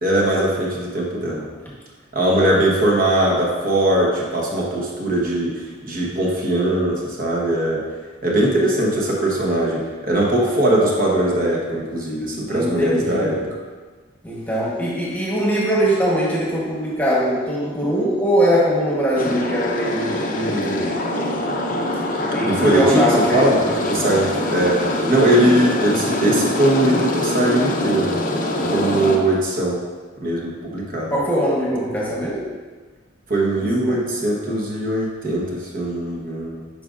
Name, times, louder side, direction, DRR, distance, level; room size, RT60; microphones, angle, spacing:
voice 1, 0.0-1.4 2.1-7.8 8.2-13.4 22.4-23.6 23.9-28.1 28.5-29.8 30.2-31.1 33.3-36.6, right 1 dB, 45° right, -3 dB, 1.0 m, -20 dB
voice 2, 12.5-13.5 14.2-21.0 22.3-23.8 31.1-32.5 33.6-34.0, equal, 10° left, -5 dB, 1.1 m, -21 dB
sound 1, 19.2-29.2, left 1 dB, 40° left, 0.6 m, -24 dB
8.5 x 5.1 x 2.5 m, 1.4 s
head